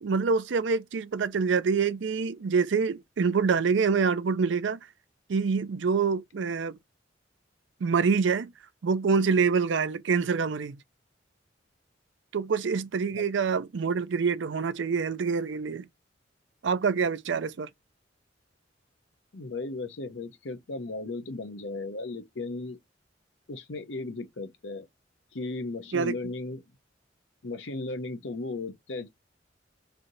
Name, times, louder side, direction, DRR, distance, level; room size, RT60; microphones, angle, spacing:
voice 1, 0.0-4.8 5.3-6.8 7.8-8.5 8.8-10.8 12.3-15.9 16.6-17.7 25.9-26.2, right 5 dB, 75° right, 0.4 m, -26 dB
voice 2, 19.3-22.8 23.5-24.9 25.3-26.6 27.4-29.1, left 3 dB, 75° left, 0.8 m, -36 dB
3.2 x 2.7 x 3.9 m
head